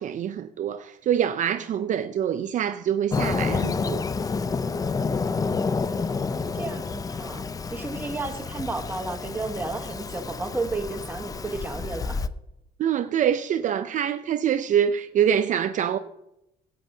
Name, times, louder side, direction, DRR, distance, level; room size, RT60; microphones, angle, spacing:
voice 1, 0.0-4.0 12.8-16.0, right 9 dB, 50° right, 0.5 m, -25 dB
Fireworks, 3.1-12.3, left 4 dB, 20° left, 0.4 m, -29 dB
voice 2, 6.1-7.4 7.7-12.2, right 3 dB, 10° right, 1.1 m, -33 dB
15.5 x 8.4 x 2.7 m
cardioid pair, 110°, 17 cm